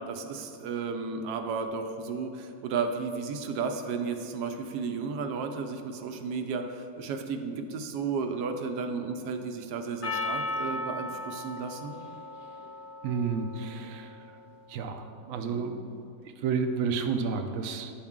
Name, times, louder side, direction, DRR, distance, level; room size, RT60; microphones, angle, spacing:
voice 1, 0.1-12.0 15.5-15.6, right 5 dB, 85° right, 6 dB, 1.2 m, -33 dB
Percussion, 10.0-14.6, left 2 dB, 50° left, 0.6 m, -37 dB
voice 2, 13.0-14.2 14.7-17.9, right 5 dB, 65° right, 6 dB, 0.8 m, -31 dB
9.2 x 5.8 x 3.6 m, 2.5 s
omnidirectional pair, 1.7 m